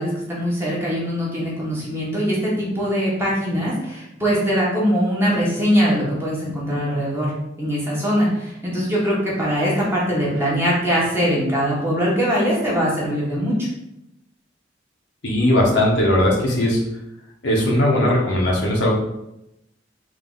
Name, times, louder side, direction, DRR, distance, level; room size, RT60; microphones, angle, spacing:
voice 1, 0.0-7.3 7.6-13.7, equal, 15° right, -6 dB, 1.2 m, -22 dB
voice 2, 15.2-16.8 17.4-18.9, left 1 dB, 70° left, -3 dB, 1.0 m, -18 dB
3.8 x 2.7 x 3.8 m, 0.86 s
head